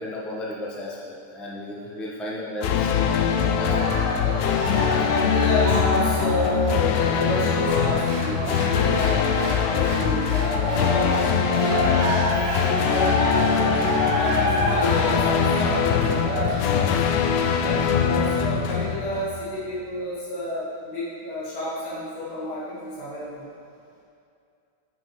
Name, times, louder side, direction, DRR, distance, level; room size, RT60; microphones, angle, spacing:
voice 1, 0.0-4.0 12.5-12.6 17.3-17.5, left 1 dB, ahead, -5 dB, 0.6 m, -34 dB
sound 1, 2.6-19.7, left 7 dB, 80° left, 1.2 m, -23 dB
Cheering, 3.6-9.9 10.3-16.9 17.5-17.6, left 1 dB, 55° right, 1.9 m, -28 dB
voice 2, 4.9-12.2 12.6-17.0 17.6-23.5, left 1 dB, 65° left, -9 dB, 2.3 m, -30 dB
Applause, 7.6-19.2, right 1 dB, 25° right, 1.5 m, -39 dB
9.6 x 6.4 x 3.1 m, 2.4 s
omnidirectional pair, 1.9 m